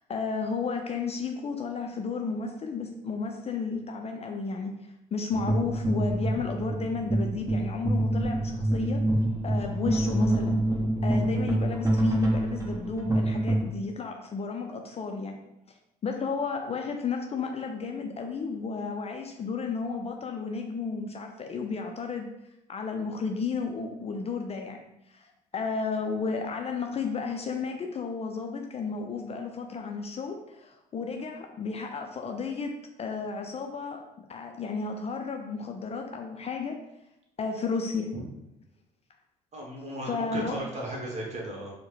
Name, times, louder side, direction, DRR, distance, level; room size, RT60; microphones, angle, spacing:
voice 1, 0.0-9.0 9.4-10.6 11.0-15.4 15.7-15.8 16.0-22.3 22.7-24.8 25.1-36.8 37.4-38.2 40.1-40.6, left 4 dB, 35° left, 3 dB, 0.4 m, -33 dB
sound 1, 5.3-13.7, right 1 dB, 15° right, 0.9 m, -26 dB
voice 2, 39.5-41.7, right 1 dB, 35° right, -2 dB, 1.3 m, -36 dB
4.4 x 2.1 x 3.2 m, 0.86 s
hypercardioid pair, 50°, 19 cm